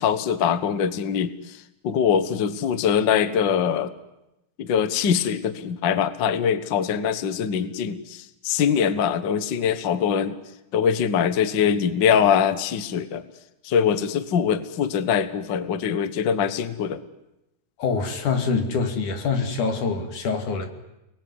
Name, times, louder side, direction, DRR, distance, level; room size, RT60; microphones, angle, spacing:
voice 1, 0.0-1.6 1.8-3.9 4.6-10.4 10.7-13.2 13.6-17.0, left 7 dB, 50° left, 12 dB, 1.5 m, -23 dB
voice 2, 17.8-20.7, left 4 dB, 85° left, 6 dB, 4.0 m, -25 dB
29.5 x 20.5 x 9.7 m, 0.92 s
omnidirectional pair, 3.4 m